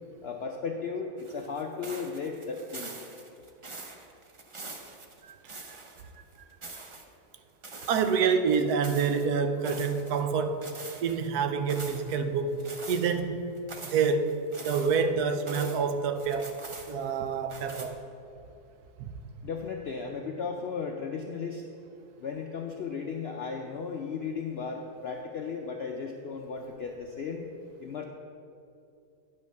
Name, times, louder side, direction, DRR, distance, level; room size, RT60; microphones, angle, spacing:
voice 1, 0.2-2.9 19.4-21.7 22.2-27.4 27.8-28.0, left 5 dB, 70° left, 2 dB, 0.6 m, -35 dB
sound 1, 1.2-6.1 6.3-7.0 7.6-9.3 9.6-10.3 10.6-11.3 11.7-12.2 12.6-13.1 13.6-15.8 16.1-17.2 17.5-17.9, right 3 dB, 45° right, 0.3 m, -44 dB
voice 2, 7.9-10.6 11.0-13.4 13.9-14.3 14.6-16.5 16.9-18.0 19.0-19.1, right 5 dB, 80° right, 8 dB, 1.2 m, -27 dB
9.5 x 5.3 x 6.5 m, 2.6 s
omnidirectional pair, 1.7 m